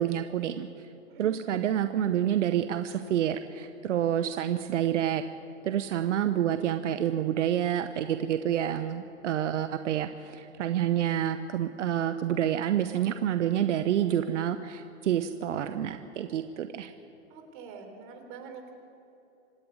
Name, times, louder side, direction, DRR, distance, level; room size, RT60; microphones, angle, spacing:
voice 1, 0.0-0.9 1.2-5.2 5.6-16.9, right 10 dB, 80° right, 9 dB, 1.0 m, -28 dB
voice 2, 1.1-1.5 17.3-18.7, right 5 dB, 45° right, 5 dB, 3.7 m, -45 dB
26.0 x 11.0 x 9.6 m, 2.9 s
hypercardioid pair, 135°, 36 cm